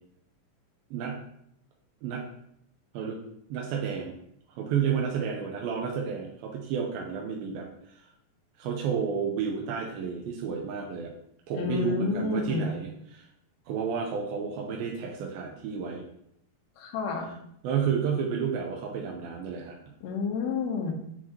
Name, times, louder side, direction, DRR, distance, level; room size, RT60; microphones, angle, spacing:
voice 1, 0.9-1.2 2.0-2.2 2.9-3.2 3.5-4.2 4.5-8.1 8.6-11.1 11.5-13.3 13.7-16.1 17.6-19.8, right 7 dB, 90° right, 0 dB, 2.5 m, -31 dB
voice 2, 11.6-12.7 16.8-17.3 20.0-20.9, left 4 dB, 75° left, 1 dB, 1.6 m, -30 dB
7.7 x 4.8 x 2.8 m, 0.74 s
omnidirectional pair, 4.1 m